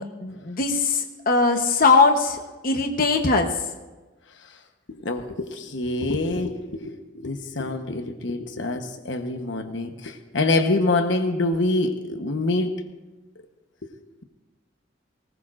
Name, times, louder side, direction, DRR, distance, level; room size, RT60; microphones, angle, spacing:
voice 1, 0.0-3.5, left 4 dB, 50° left, 4 dB, 1.0 m, -21 dB
voice 2, 5.0-12.7, left 2 dB, 70° left, 6 dB, 1.1 m, -25 dB
19.5 x 19.0 x 2.5 m, 1.2 s
head